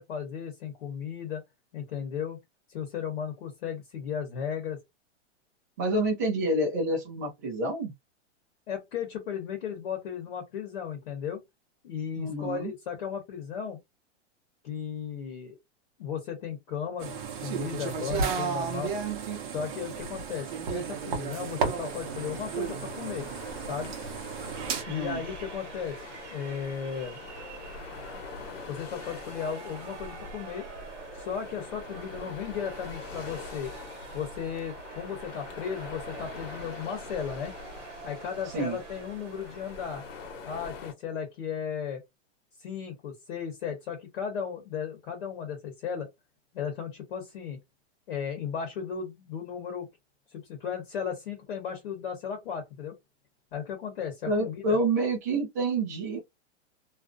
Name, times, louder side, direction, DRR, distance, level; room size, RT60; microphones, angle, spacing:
voice 1, 0.0-1.4 1.7-2.4 2.7-4.8 8.7-11.4 11.8-13.8 14.6-15.6 16.0-18.9 19.5-23.3 23.7-23.9 24.9-26.0 26.3-27.2 28.7-30.7 31.2-33.7 34.1-37.5 38.0-40.0 40.4-42.0 42.6-46.1 46.5-47.6 48.1-49.9 50.3-53.0 53.5-54.8, left 7 dB, 55° left, 0.9 m, -35 dB
voice 2, 5.8-7.9 12.2-12.7 24.9-25.2 38.5-38.8 54.3-56.2, right 2 dB, 15° right, 0.4 m, -28 dB
sound 1, 17.0-24.8, right 6 dB, 40° right, 0.7 m, -33 dB
sound 2, 21.8-40.9, left 4 dB, 85° left, 1.0 m, -44 dB
sound 3, 24.5-40.8, right 6 dB, 75° right, 1.0 m, -46 dB
2.4 x 2.0 x 2.5 m
supercardioid pair, 170°, 36 cm